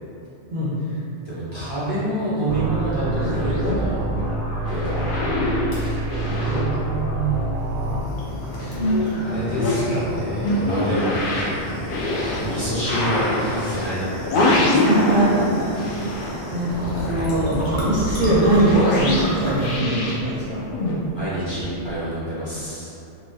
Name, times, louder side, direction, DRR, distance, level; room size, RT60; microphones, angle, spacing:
voice 1, 1.2-4.0 4.7-8.9 9.2-11.1 12.4-14.8 21.1-22.9, right 1 dB, 25° left, -13 dB, 0.9 m, -28 dB
sound 1, 2.5-8.0, right 2 dB, 90° right, 0.9 m, -27 dB
sound 2, 2.9-7.6 7.9-15.4 15.7-20.9, left 1 dB, 60° left, 0.6 m, -25 dB
sound 3, 5.7-22.0, equal, 80° left, 1.1 m, -32 dB
voice 2, 14.9-15.8 16.2-16.7 17.1-20.6, right 1 dB, 50° right, -10 dB, 0.6 m, -21 dB
2.8 x 2.3 x 3.4 m, 2.8 s
omnidirectional pair, 1.2 m